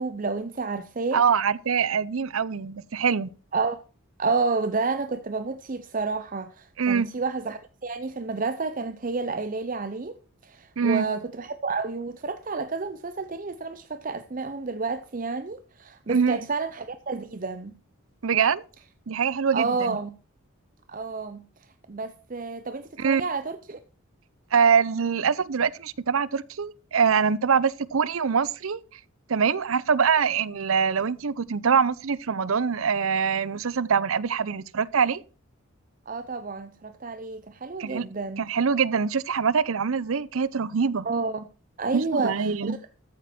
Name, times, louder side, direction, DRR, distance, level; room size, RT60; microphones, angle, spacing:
voice 1, 0.0-1.2 3.5-3.8 4.2-10.1 10.4-17.7 19.5-20.1 20.9-21.4 21.9-23.8 36.1-38.4 41.0-41.4 41.8-42.8, right 4 dB, 40° right, 0.6 m, -30 dB
voice 2, 1.1-3.3 6.8-7.1 10.8-11.0 16.1-16.5 18.2-18.6 19.1-20.0 23.0-23.2 24.5-28.8 29.3-35.2 37.8-38.0 38.4-41.1 41.9-42.8, right 6 dB, 80° right, 0.6 m, -24 dB
14.0 x 8.4 x 4.3 m
head